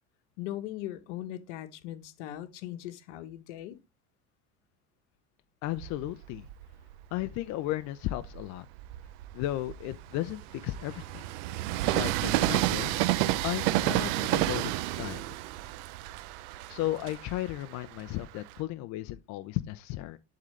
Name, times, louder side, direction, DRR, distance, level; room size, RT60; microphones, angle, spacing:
voice 1, 0.4-3.8, left 13 dB, 85° left, 1.1 m, -39 dB
voice 2, 5.6-6.5 7.1-8.7 9.3-11.2 11.9-12.9 13.4-15.2 16.7-20.2, left 15 dB, 55° left, 0.6 m, -34 dB
Train, 5.7-7.4 8.0-18.6, right 16 dB, 80° right, 0.6 m, -31 dB
11.0 x 3.8 x 3.2 m
supercardioid pair, 120°, 34 cm